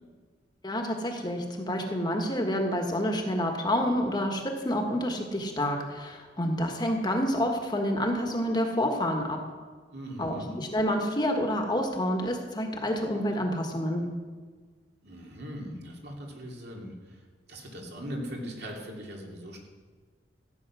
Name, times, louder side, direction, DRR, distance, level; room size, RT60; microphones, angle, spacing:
voice 1, 0.6-9.4 10.2-14.1, equal, 25° left, 3 dB, 1.5 m, -28 dB
voice 2, 9.9-10.5 15.0-16.9 17.5-19.6, equal, 60° right, 0 dB, 2.7 m, -39 dB
14.5 x 9.0 x 6.2 m, 1.5 s
head